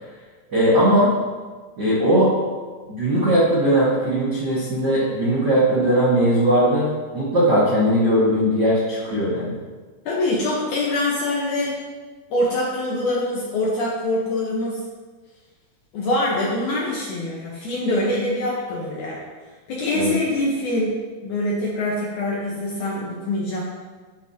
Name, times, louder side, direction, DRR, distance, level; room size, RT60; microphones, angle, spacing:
voice 1, 0.5-1.1 1.8-2.3 2.9-6.9 7.1-9.6 19.9-20.1, right 1 dB, 70° right, -8 dB, 1.0 m, -19 dB
voice 2, 10.1-11.7 12.3-14.8 15.9-19.2 19.7-23.6, left 1 dB, 65° left, -4 dB, 2.0 m, -24 dB
10.5 x 8.8 x 2.9 m, 1.4 s
omnidirectional pair, 4.9 m